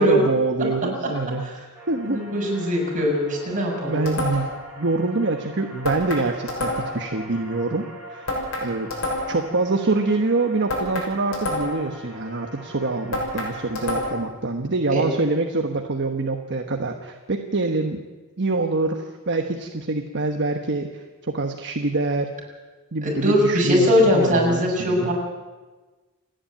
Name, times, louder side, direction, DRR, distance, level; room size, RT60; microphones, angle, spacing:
voice 1, 0.0-1.4 1.9-2.2 3.9-4.5 4.8-8.9 9.3-18.0 18.4-22.3 22.9-25.1, right 3 dB, 55° right, 4 dB, 1.2 m, -25 dB
sound 1, 1.7-14.0, right 1 dB, 5° right, 6.9 m, -43 dB
voice 2, 2.0-4.0 14.9-15.0 23.0-25.1, equal, 35° right, -2 dB, 7.1 m, -21 dB
sound 2, 4.1-4.7 5.8-7.1 8.3-9.5 10.7-11.9 13.1-14.3, left 1 dB, 65° left, 6.3 m, -28 dB
28.5 x 10.5 x 9.0 m, 1.3 s
head